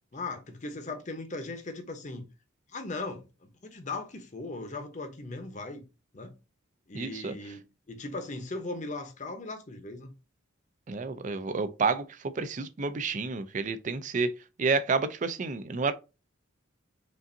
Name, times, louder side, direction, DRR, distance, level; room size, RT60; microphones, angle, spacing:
voice 1, 0.1-2.3 2.7-5.8 6.1-6.3 6.9-7.6 7.9-10.1, left 2 dB, 40° left, 0.8 m, -38 dB
voice 2, 6.9-7.3 10.9-14.3 14.6-15.9, right 4 dB, 40° right, 0.4 m, -30 dB
5.2 x 2.6 x 2.6 m
head